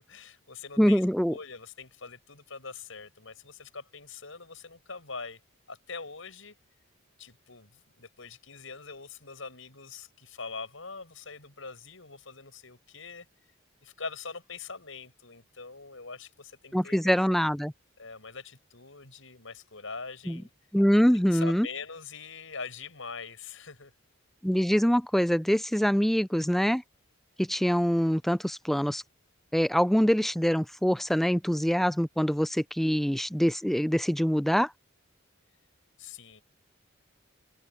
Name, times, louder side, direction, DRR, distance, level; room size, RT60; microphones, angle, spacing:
voice 1, 0.0-5.4 5.7-6.5 7.2-13.3 13.8-17.2 18.0-20.5 21.1-23.9 36.0-36.4, left 4 dB, 70° left, 6.2 m, -43 dB
voice 2, 0.8-1.3 16.7-17.7 20.3-20.4 20.7-21.7 24.4-26.8 27.4-29.0 29.5-34.7, equal, ahead, 0.4 m, -24 dB
head